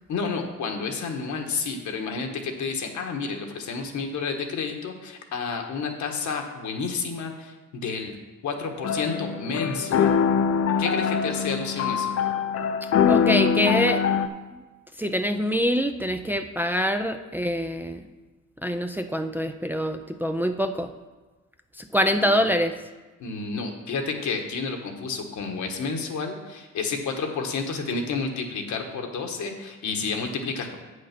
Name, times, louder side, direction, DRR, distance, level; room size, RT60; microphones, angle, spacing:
voice 1, 0.1-8.1 8.4-10.2 10.8-12.2 22.2-22.4 23.2-30.8, left 4 dB, 70° left, 3 dB, 1.4 m, -30 dB
sound 1, 8.8-14.3, left 7 dB, 55° left, 0.6 m, -23 dB
voice 2, 13.1-14.2 14.5-14.6 15.0-18.0 18.6-20.9 21.8-22.8, equal, 5° right, 6 dB, 0.5 m, -25 dB
8.1 x 6.5 x 5.9 m, 1.2 s
cardioid pair, 90°, 30 cm